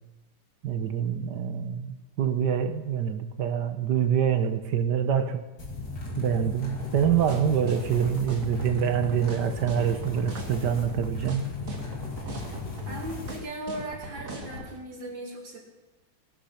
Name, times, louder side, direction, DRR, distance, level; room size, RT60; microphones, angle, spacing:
voice 1, 0.6-5.4 6.2-11.5, right 8 dB, 65° right, 9 dB, 1.6 m, -26 dB
sound 1, 5.6-13.4, left 4 dB, 60° left, 3.3 m, -36 dB
sound 2, 6.8-14.7, right 1 dB, 45° right, 2.6 m, -39 dB
voice 2, 12.1-12.5 12.9-15.6, right 1 dB, 85° right, 0 dB, 3.5 m, -38 dB
19.0 x 12.0 x 5.9 m, 1.1 s
omnidirectional pair, 2.0 m